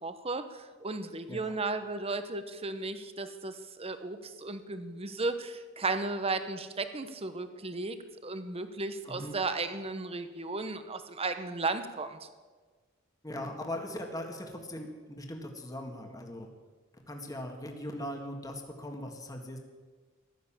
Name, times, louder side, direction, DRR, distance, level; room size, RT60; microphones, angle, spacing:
voice 1, 0.0-8.0 8.2-12.2, right 3 dB, 30° right, 10 dB, 1.1 m, -35 dB
voice 2, 13.2-16.5 17.1-19.6, left 1 dB, 20° left, 3 dB, 1.8 m, -40 dB
15.0 x 12.5 x 7.4 m, 1.4 s
head